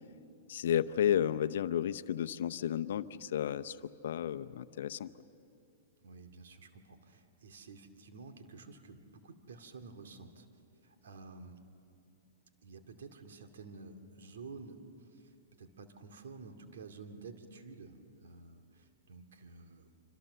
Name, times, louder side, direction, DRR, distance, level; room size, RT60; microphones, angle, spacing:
voice 1, 0.5-3.8 4.0-5.1, left 10 dB, 70° left, 13 dB, 0.7 m, -32 dB
voice 2, 6.0-10.5 10.8-11.6 12.6-19.9, right 4 dB, 75° right, 6 dB, 2.3 m, -51 dB
26.0 x 26.0 x 6.8 m, 2.7 s
hypercardioid pair, 125°, 0 cm